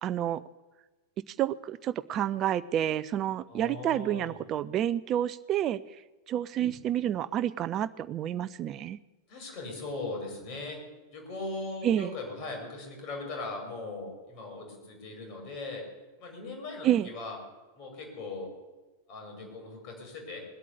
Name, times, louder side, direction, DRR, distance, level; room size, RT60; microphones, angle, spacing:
voice 1, 0.0-0.4 1.3-5.8 6.3-9.0 11.8-12.1 16.8-17.1, right 11 dB, 30° right, 15 dB, 0.5 m, -29 dB
voice 2, 3.5-4.4 6.5-6.7 9.3-10.8 11.1-15.9 16.2-17.4 17.7-18.5 19.1-20.5, left 2 dB, 40° left, 2 dB, 5.6 m, -39 dB
20.5 x 8.3 x 8.3 m, 1.2 s
figure-of-eight pair, 90°, 0 cm